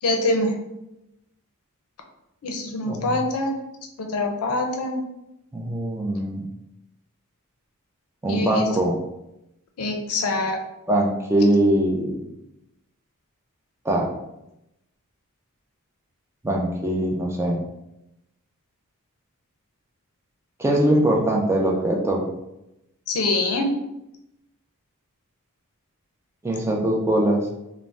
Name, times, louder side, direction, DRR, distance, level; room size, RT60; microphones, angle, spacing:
voice 1, 0.0-0.5 2.4-3.5 4.0-5.0 8.3-8.7 9.8-10.6 23.1-23.7, left 2 dB, 70° left, 3 dB, 0.5 m, -24 dB
voice 2, 2.9-3.2 5.5-6.5 8.2-9.0 10.9-12.2 13.8-14.1 16.4-17.6 20.6-22.3 26.4-27.5, right 1 dB, 10° right, 0 dB, 0.3 m, -22 dB
2.5 x 2.0 x 3.3 m, 0.88 s
head